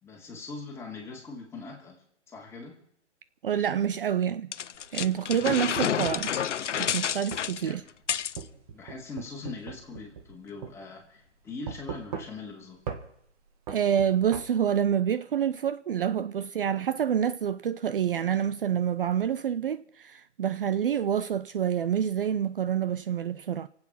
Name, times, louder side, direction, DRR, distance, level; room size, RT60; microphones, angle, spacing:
voice 1, 0.0-2.8 7.6-7.8 8.7-12.8, left 3 dB, 5° left, 2.6 m, -41 dB
voice 2, 3.4-4.5 4.9-6.3 6.8-7.8 13.7-23.7, right 9 dB, 50° right, 0.6 m, -27 dB
sound 1, 4.5-8.4, left 9 dB, 90° left, 0.6 m, -29 dB
sound 2, 4.8-6.3 7.3-7.5 8.4-10.4 10.6-10.8 11.7-12.5 12.9-13.1 13.7-14.5, right 7 dB, 30° right, 1.7 m, -39 dB
26.0 x 8.8 x 5.7 m
hypercardioid pair, 150°, 35 cm